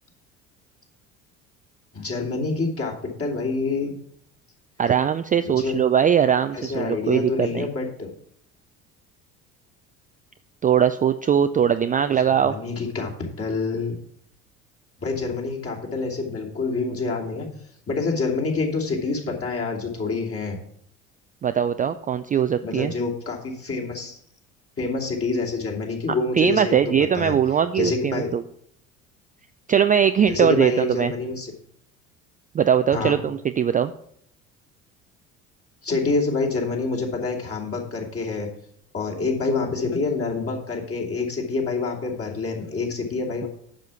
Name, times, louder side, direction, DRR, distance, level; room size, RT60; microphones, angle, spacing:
voice 1, 1.9-3.9 5.4-5.7 6.5-8.1 12.3-13.1 13.4-14.0 15.0-17.5 17.9-20.6 22.6-24.2 24.8-26.8 27.1-27.3 27.7-28.3 30.3-31.5 32.9-33.2 35.8-38.5 38.9-43.5, left 3 dB, 35° left, -1 dB, 2.8 m, -27 dB
voice 2, 4.8-7.7 10.6-12.5 21.4-22.9 26.4-28.4 29.7-31.1 32.5-33.9, right 8 dB, 20° right, 9 dB, 0.4 m, -20 dB
7.4 x 6.4 x 7.0 m, 0.68 s
hypercardioid pair, 65°, 40 cm